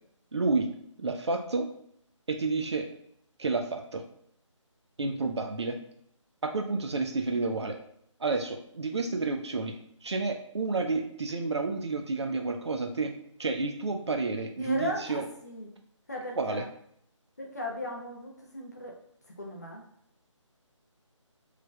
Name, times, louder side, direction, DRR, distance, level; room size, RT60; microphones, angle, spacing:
voice 1, 0.3-0.7 1.0-1.7 2.3-2.9 3.4-4.0 5.0-5.8 6.4-7.8 8.2-13.1 13.4-15.2 16.4-16.6, right 3 dB, 55° right, 4 dB, 0.5 m, -30 dB
voice 2, 14.6-15.7 16.1-16.7 17.4-19.0 19.4-19.8, left 1 dB, 30° left, -1 dB, 0.5 m, -37 dB
3.2 x 2.1 x 3.4 m, 0.70 s
figure-of-eight pair, 175°, 16 cm